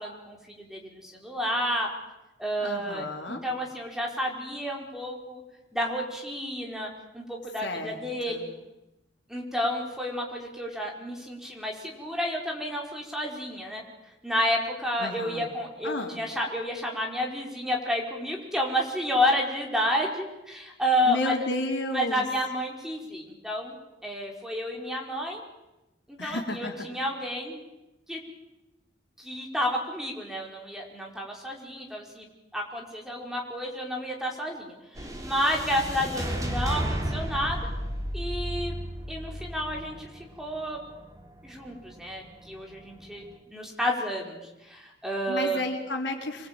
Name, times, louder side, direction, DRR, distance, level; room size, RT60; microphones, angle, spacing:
voice 1, 0.0-1.9 2.4-5.4 5.7-8.5 9.3-13.8 14.2-21.3 21.9-23.8 24.0-25.4 26.1-27.6 28.1-28.2 29.2-32.3 32.5-37.6 38.1-38.8 39.1-40.1 40.4-40.8 41.4-43.2 43.5-44.4 44.7-45.6, equal, 5° right, 0 dB, 4.9 m, -30 dB
voice 2, 2.6-3.5 7.6-8.0 8.3-8.4 15.0-15.5 15.8-16.2 21.0-22.2 26.2-26.9 45.3-46.5, left 2 dB, 80° left, 3 dB, 4.0 m, -32 dB
sound 1, 34.9-43.3, equal, 20° right, 3.8 m, -34 dB
26.5 x 23.0 x 9.0 m, 0.97 s
head